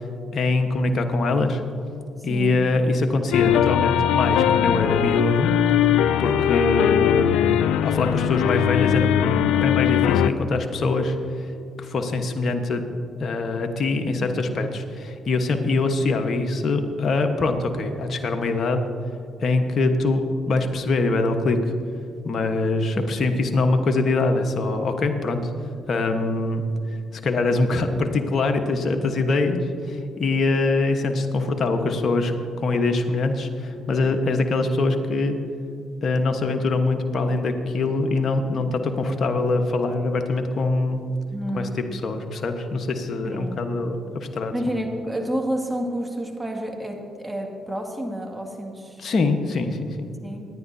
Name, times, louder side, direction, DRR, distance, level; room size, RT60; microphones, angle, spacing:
voice 1, 0.3-1.6 2.2-5.5 6.2-7.4 7.8-9.2 9.6-11.5 11.8-12.8 13.2-18.8 19.4-21.6 22.2-25.5 25.9-26.7 27.1-32.3 32.6-35.4 36.0-41.0 41.5-44.5 49.0-50.1, left 3 dB, 55° left, 5 dB, 1.2 m, -23 dB
voice 2, 2.2-2.7 14.2-14.3 22.9-23.1 41.3-41.8 43.2-43.6 44.5-49.0 50.2-50.5, right 1 dB, 15° right, 1 dB, 2.2 m, -30 dB
sound 1, 3.3-10.3, left 10 dB, 80° left, 0.4 m, -20 dB
25.0 x 10.0 x 2.8 m, 2.4 s
hypercardioid pair, 55°, 0 cm